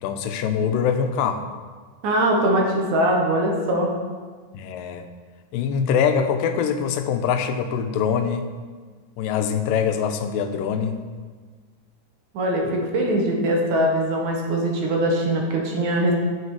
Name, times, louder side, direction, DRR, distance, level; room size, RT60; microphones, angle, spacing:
voice 1, 0.0-1.5 4.5-5.1 5.5-8.5 9.2-11.0 12.6-12.8, left 7 dB, 90° left, 8 dB, 2.3 m, -23 dB
voice 2, 2.0-3.9 12.3-16.1, right 1 dB, 70° right, 0 dB, 2.4 m, -22 dB
9.3 x 6.5 x 4.7 m, 1.5 s
omnidirectional pair, 3.9 m